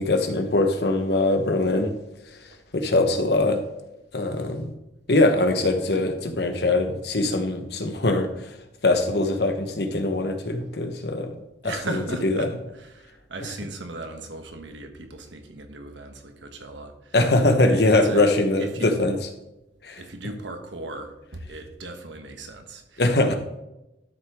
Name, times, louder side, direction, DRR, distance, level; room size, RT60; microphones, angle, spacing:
voice 1, 0.0-2.0 2.7-3.6 4.1-4.7 5.1-8.3 8.8-11.3 11.6-12.5 17.1-19.2 19.8-20.0 23.0-23.3, left 2 dB, 60° left, 6 dB, 1.2 m, -22 dB
voice 2, 11.6-17.1 17.6-18.9 20.0-23.0, right 2 dB, 85° right, 6 dB, 1.3 m, -37 dB
12.0 x 6.6 x 3.6 m, 0.92 s
head